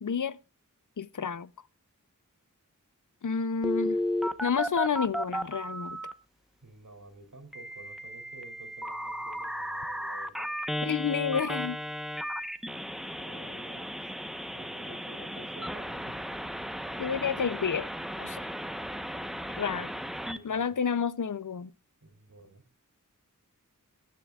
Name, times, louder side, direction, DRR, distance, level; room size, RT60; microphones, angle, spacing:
voice 1, 0.0-0.4 1.0-1.5 3.2-4.0 4.4-6.0 10.8-11.8 17.0-17.9 18.2-18.5 19.5-19.9 20.4-21.7, left 6 dB, 70° left, 0.6 m, -30 dB
Telephone, 3.6-6.1 7.5-20.4, equal, ahead, 0.9 m, -35 dB
voice 2, 6.6-10.5 10.8-11.1 13.1-14.1 14.5-16.2 19.7-19.9 20.2-20.7 22.0-22.6, right 2 dB, 65° right, 3.1 m, -51 dB
23.0 x 10.5 x 2.4 m
wide cardioid pair, 55°, 32 cm